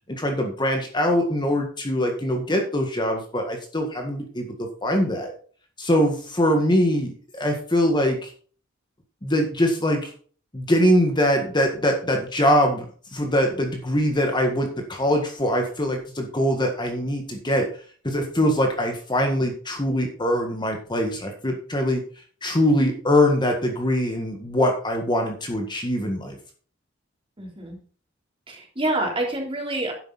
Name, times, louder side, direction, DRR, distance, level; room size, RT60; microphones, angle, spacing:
voice 1, 0.1-5.3 5.8-8.3 9.2-10.1 10.5-12.8 13.1-17.7 18.0-22.0 22.4-26.4, equal, 25° left, 3 dB, 1.7 m, -23 dB
voice 2, 27.4-27.8 28.5-29.9, right 2 dB, 25° right, 0 dB, 3.6 m, -27 dB
11.0 x 8.0 x 4.1 m, 0.43 s
head